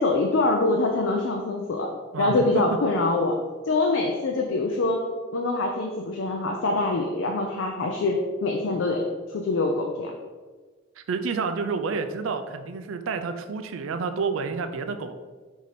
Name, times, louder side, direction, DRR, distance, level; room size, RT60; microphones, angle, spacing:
voice 1, 0.0-3.4 3.7-5.0 5.3-9.1 9.3-10.1, left 2 dB, 70° left, 2 dB, 0.4 m, -24 dB
voice 2, 11.0-15.2, right 5 dB, 80° right, 9 dB, 0.4 m, -29 dB
4.7 x 2.7 x 4.1 m, 1.4 s
head